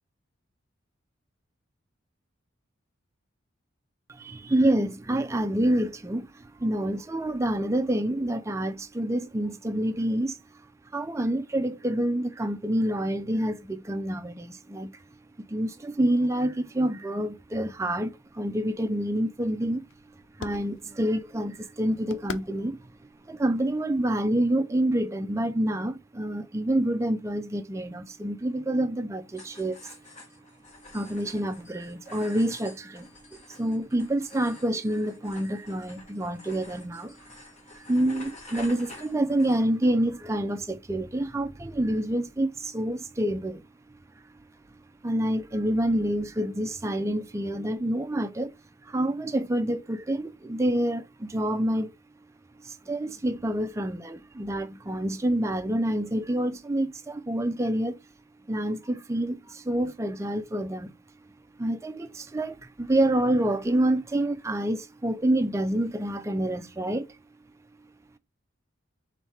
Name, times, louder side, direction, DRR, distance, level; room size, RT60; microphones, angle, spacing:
voice 1, 4.1-10.4 10.9-14.9 15.4-19.8 20.4-22.9 23.3-29.8 30.9-33.1 33.5-37.2 37.7-43.6 45.0-48.5 48.8-51.9 52.6-58.0 58.5-60.9 61.6-67.1, right 1 dB, 15° right, 0.4 m, -27 dB
sound 1, 18.2-24.5, left 5 dB, 70° left, 0.5 m, -46 dB
sound 2, 29.3-39.9, left 2 dB, 35° left, 1.3 m, -49 dB
4.4 x 3.2 x 3.2 m
head